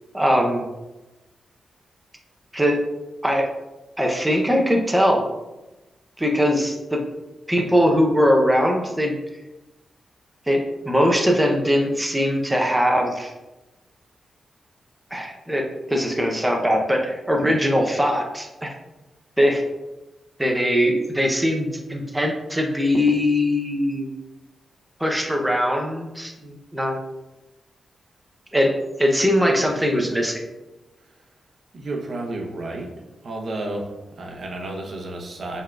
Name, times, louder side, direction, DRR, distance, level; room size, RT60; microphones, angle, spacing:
voice 1, 0.1-0.6 2.5-2.8 3.2-3.5 4.0-5.2 6.2-7.0 7.5-9.1 10.5-13.3 15.1-18.7 19.4-19.6 20.4-24.1 25.0-27.0 28.5-28.7 29.0-30.4, equal, 5° right, 1 dB, 0.6 m, -21 dB
voice 2, 31.7-32.9 33.2-35.6, right 2 dB, 50° right, 1 dB, 0.8 m, -32 dB
5.3 x 3.7 x 2.3 m, 1.0 s
wide cardioid pair, 135°, 0 cm